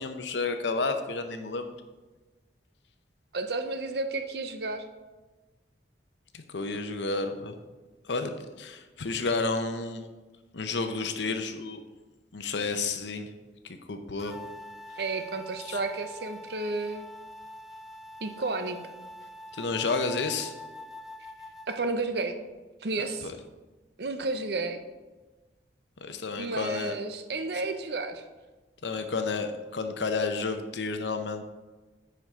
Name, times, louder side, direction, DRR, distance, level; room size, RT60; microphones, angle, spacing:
voice 1, 0.0-1.7 6.3-7.5 8.1-8.3 8.6-10.1 10.5-11.8 12.3-13.3 13.6-14.4 15.6-15.8 19.5-20.5 23.2-23.4 26.0-27.0 28.8-31.4, left 3 dB, 80° left, 7 dB, 0.7 m, -31 dB
voice 2, 3.3-4.8 15.0-17.1 18.2-18.8 21.7-22.4 22.8-23.3 24.0-24.8 26.4-28.2, right 3 dB, 60° right, 8 dB, 0.6 m, -32 dB
sound 1, 14.2-21.8, left 1 dB, ahead, 0.3 m, -45 dB
10.0 x 4.7 x 3.6 m, 1.2 s
head